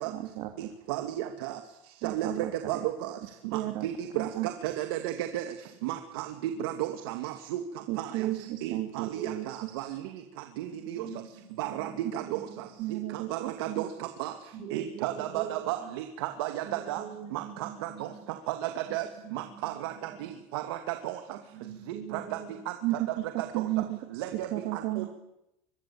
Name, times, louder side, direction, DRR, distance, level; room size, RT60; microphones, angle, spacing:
voice 1, 0.1-0.7 2.0-2.5 3.5-3.9 4.2-4.5 7.9-9.9 12.8-13.3 13.7-13.8 22.8-23.1 23.5-24.2 24.5-25.1, right 16 dB, 65° right, 6 dB, 2.4 m, -33 dB
voice 2, 0.9-1.6 2.0-3.2 3.5-5.4 5.8-7.6 8.0-8.3 8.6-10.0 10.6-11.1 11.6-12.4 13.1-14.3 14.7-17.0 17.3-18.1 18.5-19.1 19.3-19.9 20.2-21.2 22.1-22.4 23.4-23.7 24.1-25.0, right 13 dB, 85° right, 6 dB, 2.3 m, -34 dB
voice 3, 8.2-8.6 9.1-9.3 10.7-12.4 14.5-15.5 15.8-15.9 16.6-18.1 18.9-19.0 19.2-19.7 20.1-20.3 21.5-22.5, right 7 dB, 40° right, 5 dB, 6.7 m, -44 dB
24.5 x 23.0 x 8.7 m, 0.85 s
cardioid pair, 150°, 12 cm